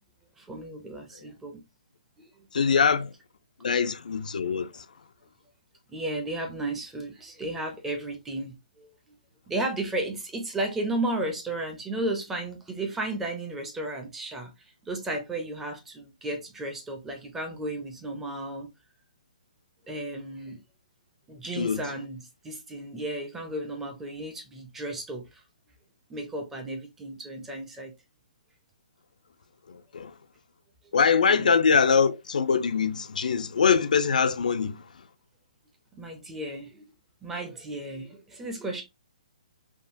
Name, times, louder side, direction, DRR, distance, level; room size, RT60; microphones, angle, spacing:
voice 1, 0.4-1.6 2.2-2.3 5.9-8.9 9.5-14.5 14.9-18.7 19.9-20.6 21.3-25.2 26.1-27.9 31.3-31.5 35.9-36.9 37.2-38.8, right 2 dB, 5° right, 0.4 m, -34 dB
voice 2, 2.5-3.1 3.6-4.8 21.6-21.9 29.7-30.1 30.9-34.8, left 6 dB, 80° left, 0.4 m, -23 dB
3.5 x 2.2 x 2.5 m
hypercardioid pair, 170°, 4 cm